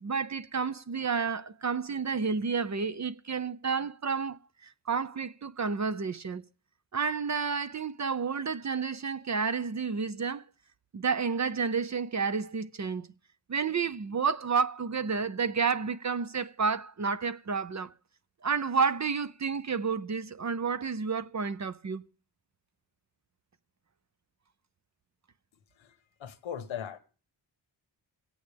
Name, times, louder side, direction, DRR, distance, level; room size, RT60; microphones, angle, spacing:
voice 1, 0.0-6.4 6.9-10.4 10.9-13.1 13.5-17.9 18.4-22.0, right 5 dB, 35° right, 0.6 m, -30 dB
voice 2, 26.2-27.0, left 9 dB, 85° left, 1.2 m, -38 dB
24.5 x 8.7 x 3.4 m
cardioid pair, 45°, 46 cm